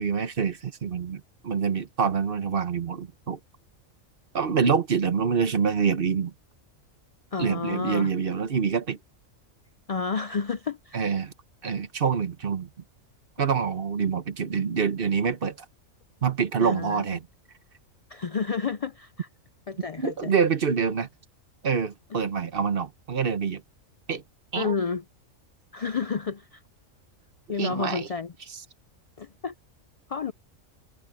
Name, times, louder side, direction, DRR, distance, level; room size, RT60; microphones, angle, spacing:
voice 1, 0.0-3.4 4.3-6.3 7.4-9.0 10.9-11.3 11.6-12.7 13.4-15.6 16.2-17.3 20.0-21.1 21.6-23.6 24.1-24.2 24.5-24.7 27.6-28.1, right 6 dB, 50° right, 1.1 m, -26 dB
voice 2, 7.3-8.1 9.9-11.0 16.6-17.0 18.1-19.3 19.7-20.3 24.6-25.0 25.7-26.6 27.5-28.3 29.2-29.5 30.1-30.3, left 5 dB, 70° left, 0.3 m, -30 dB
omnidirectional pair, 1.3 m